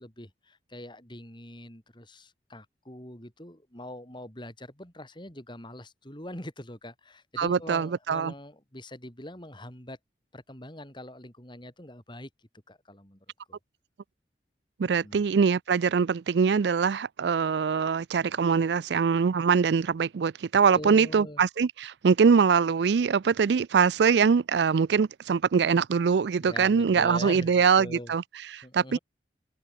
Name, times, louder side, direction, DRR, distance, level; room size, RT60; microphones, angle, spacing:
voice 1, 0.0-10.0 10.3-12.3 12.7-13.6 14.8-15.2 20.7-21.4 26.4-28.1 28.6-29.0, left 1 dB, 25° left, 6.0 m, -43 dB
voice 2, 7.4-8.3 14.8-28.2 28.5-29.0, right 6 dB, 75° right, 0.4 m, -23 dB
open air
head